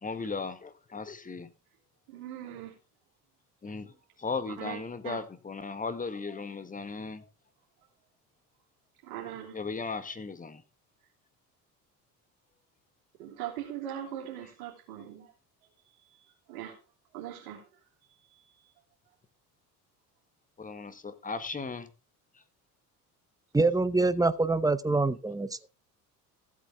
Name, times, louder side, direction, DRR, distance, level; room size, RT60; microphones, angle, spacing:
voice 1, 0.0-1.5 3.6-7.3 9.5-10.6 20.6-21.9 22.3-22.4, left 4 dB, 15° left, 1.7 m, -37 dB
voice 2, 2.1-2.7 4.6-4.8 5.0-5.2 9.0-9.5 13.2-15.3 16.5-16.8 17.1-17.6, right 11 dB, 65° right, 3.1 m, -40 dB
voice 3, 23.5-25.5, right 3 dB, 10° right, 0.8 m, -25 dB
15.0 x 8.4 x 3.6 m
figure-of-eight pair, 60°, 47 cm